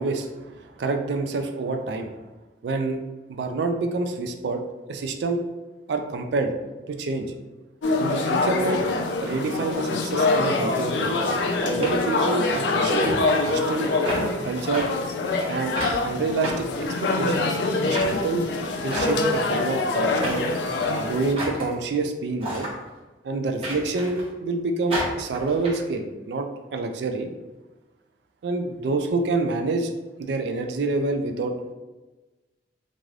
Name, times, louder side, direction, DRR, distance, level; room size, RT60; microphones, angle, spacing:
voice 1, 0.0-2.1 2.6-3.0 3.3-4.6 4.9-5.4 5.9-6.5 6.9-7.3 8.0-8.8 9.2-11.3 11.6-13.9 14.4-14.9 15.5-15.7 16.0-17.5 17.8-18.5 18.8-20.5 21.1-22.7 23.2-27.3 28.4-29.9 30.2-31.5, right 3 dB, 70° right, 5 dB, 0.3 m, -27 dB
sound 1, 7.8-21.3, left 3 dB, 85° left, 0.4 m, -25 dB
sound 2, 11.8-12.6 13.0-13.2 13.5-13.8 14.1-14.2 14.7-14.8 15.8-16.0 16.4-17.3 17.9-18.2 18.9-19.4 20.2-20.6 21.4-21.7 22.4-22.7 23.6-24.3 24.9-25.7, right 1 dB, 35° right, 0.8 m, -31 dB
3.1 x 2.5 x 2.3 m, 1.1 s
head